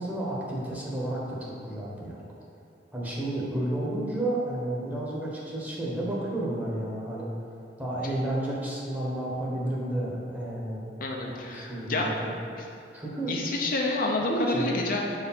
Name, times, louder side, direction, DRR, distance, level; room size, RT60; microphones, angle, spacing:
voice 1, 0.0-2.2 2.9-7.3 7.8-10.8 11.3-12.4 12.9-13.4 14.3-14.7, right 1 dB, 10° right, -5 dB, 1.1 m, -31 dB
voice 2, 11.0-12.0 13.3-15.0, left 2 dB, 50° left, -1 dB, 0.6 m, -28 dB
4.9 x 4.6 x 5.7 m, 2.5 s
head